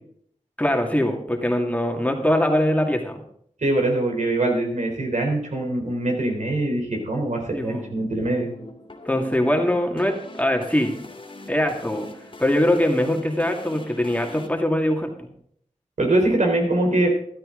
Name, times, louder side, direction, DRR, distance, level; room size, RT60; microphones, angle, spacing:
voice 1, 0.6-3.2 7.5-7.8 9.0-10.9 11.5-12.1 12.4-15.3, left 1 dB, 10° left, 2 dB, 2.2 m, -22 dB
voice 2, 3.6-8.5 16.0-17.1, right 2 dB, 65° right, 1 dB, 3.7 m, -23 dB
sound 1, 7.6-14.5, left 2 dB, 40° left, 2.5 m, -42 dB
13.5 x 12.5 x 3.9 m, 0.66 s
cardioid pair, 55°, 13 cm